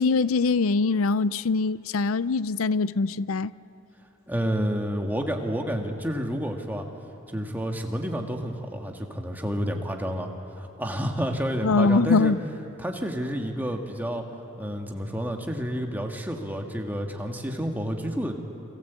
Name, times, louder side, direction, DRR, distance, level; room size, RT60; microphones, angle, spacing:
voice 1, 0.0-3.5 11.6-12.4, left 4 dB, 80° left, 0.5 m, -23 dB
voice 2, 4.3-6.9 7.3-10.3 10.6-12.3 12.8-14.2 14.6-18.4, equal, 10° right, 1.8 m, -29 dB
29.0 x 23.0 x 8.3 m
head